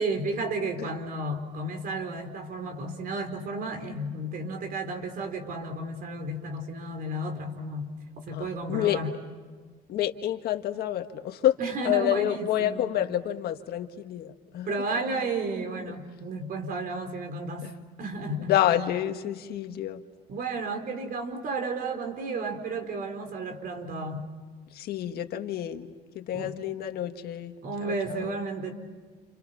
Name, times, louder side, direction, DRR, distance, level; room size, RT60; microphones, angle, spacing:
voice 1, 0.0-9.1 11.6-12.9 14.6-17.7 18.0-18.5 20.3-24.3 26.3-26.6 27.6-28.7, right 2 dB, 60° right, 6 dB, 4.5 m, -32 dB
voice 2, 8.3-9.0 9.9-11.6 11.8-14.8 15.9-16.0 18.5-20.0 24.7-27.5 27.8-28.4, left 12 dB, 70° left, 7 dB, 1.7 m, -28 dB
29.5 x 29.5 x 5.8 m, 1.5 s
cardioid pair, 110°, 17 cm